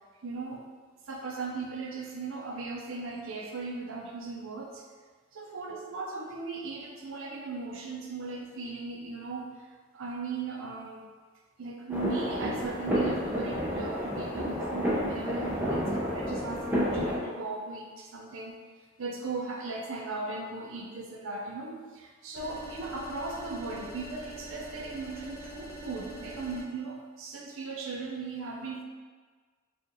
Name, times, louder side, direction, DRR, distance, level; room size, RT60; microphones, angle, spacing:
voice 1, 0.2-0.6 1.1-4.8 5.3-9.7 9.9-11.1 11.6-18.6 19.0-28.8, right 3 dB, 90° right, 0 dB, 0.6 m, -38 dB
sound 1, 11.9-17.2, equal, 10° right, 0.6 m, -30 dB
sound 2, 22.4-26.6, right 1 dB, 45° left, 1.0 m, -43 dB
4.7 x 2.5 x 3.0 m, 1.5 s
head